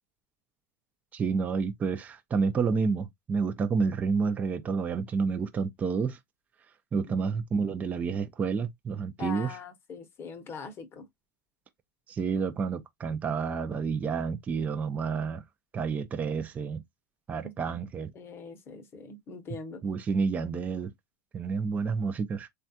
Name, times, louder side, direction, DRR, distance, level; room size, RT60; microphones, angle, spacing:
voice 1, 1.1-6.2 6.9-9.6 12.1-15.4 15.7-16.8 17.3-18.1 19.8-20.9 21.3-22.5, right 5 dB, 15° right, 0.4 m, -29 dB
voice 2, 9.2-11.1 17.4-17.5 18.1-19.8, left 4 dB, 25° left, 0.8 m, -42 dB
3.3 x 2.3 x 2.7 m
supercardioid pair, 135°, 9 cm